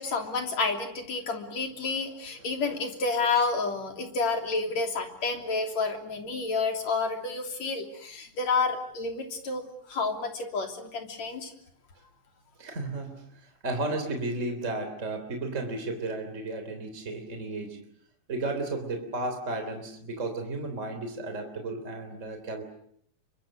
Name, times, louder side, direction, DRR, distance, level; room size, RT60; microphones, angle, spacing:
voice 1, 0.0-11.5, left 4 dB, 65° left, 3 dB, 4.4 m, -30 dB
voice 2, 12.6-17.8 18.3-22.6, right 2 dB, 25° right, 6 dB, 3.6 m, -33 dB
29.5 x 25.0 x 6.6 m, 0.66 s
omnidirectional pair, 3.4 m